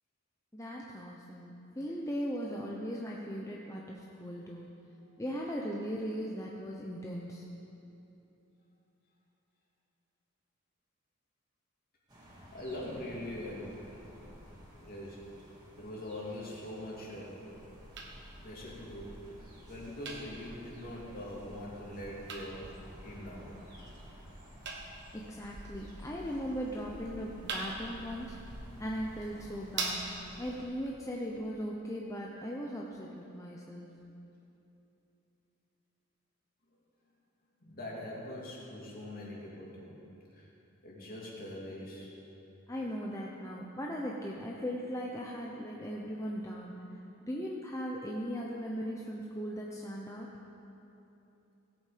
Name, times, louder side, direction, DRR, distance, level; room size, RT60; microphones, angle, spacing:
voice 1, 0.5-4.7 5.2-7.4 25.1-28.4 28.8-30.0 30.4-33.9 42.7-46.7 47.2-50.3, equal, 15° left, -2 dB, 0.7 m, -38 dB
sound 1, 12.1-30.6, equal, 20° right, 2.1 m, -54 dB
voice 2, 12.5-13.8 14.8-15.2 15.8-17.4 18.4-22.7 23.0-23.5 37.6-40.0 40.3-40.5 40.8-42.1, left 1 dB, 45° left, -4 dB, 2.6 m, -43 dB
sound 2, 17.5-30.5, right 3 dB, 55° right, 1.5 m, -45 dB
17.5 x 8.4 x 5.1 m, 3.0 s
head